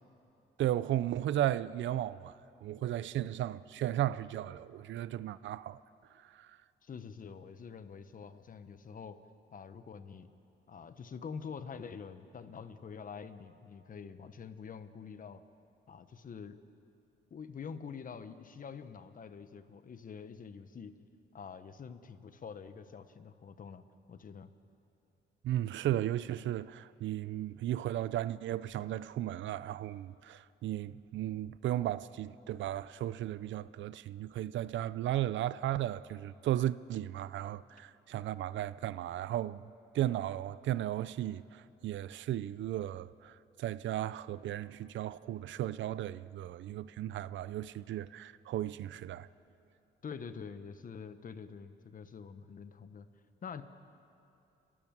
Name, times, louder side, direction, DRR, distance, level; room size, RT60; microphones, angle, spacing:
voice 1, 0.6-2.4 2.6-5.8 6.3-6.5 25.4-39.6 39.9-49.3, right 13 dB, 70° right, 0.5 m, -35 dB
voice 2, 6.8-9.2 9.5-10.3 10.7-15.4 15.9-16.6 17.3-21.0 21.3-24.5 50.0-53.1 53.4-53.6, left 6 dB, 45° left, 1.1 m, -46 dB
29.5 x 12.5 x 7.4 m
cardioid pair, 90°, 20 cm